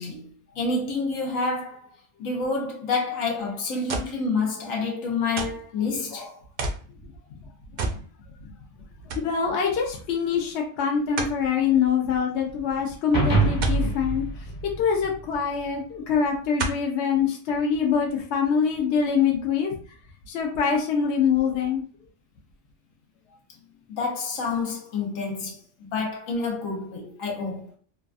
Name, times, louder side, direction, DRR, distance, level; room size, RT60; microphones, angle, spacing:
voice 1, 0.0-1.9 2.2-6.4 23.9-27.7, left 4 dB, 85° left, 1.2 m, -28 dB
sound 1, 3.9-4.2 5.4-5.7 6.6-6.9 7.8-8.1 8.4-8.5 9.1-9.3 11.2-11.4 13.6-13.9 15.3-15.4 16.6-16.9 17.6-17.7, right 3 dB, 75° right, 0.4 m, -29 dB
voice 2, 9.1-14.2 14.8-19.7 20.3-21.8, left 6 dB, 65° left, 0.9 m, -24 dB
sound 2, 13.1-15.6, right 2 dB, 20° left, 0.7 m, -25 dB
3.3 x 2.1 x 2.5 m
omnidirectional pair, 1.4 m